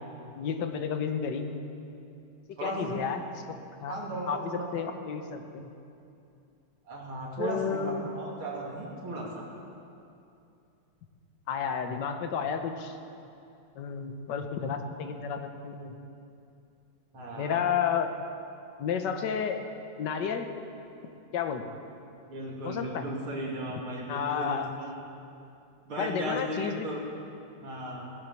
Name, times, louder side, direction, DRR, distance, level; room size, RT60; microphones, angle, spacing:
voice 1, 0.4-1.6 2.6-3.4 3.8-4.0 4.3-5.7 7.4-8.1 11.5-13.0 13.7-16.0 17.4-18.1 18.8-19.6 20.0-20.5 21.3-21.6 22.6-23.0 24.1-24.7 26.0-26.9, left 7 dB, 60° left, 6 dB, 1.5 m, -31 dB
voice 2, 2.6-3.0 3.8-4.7 6.9-9.4 17.1-17.7 22.3-25.0 25.9-27.0 27.6-28.1, right 1 dB, 75° right, -3 dB, 3.3 m, -36 dB
16.5 x 10.5 x 7.0 m, 2.6 s
omnidirectional pair, 2.4 m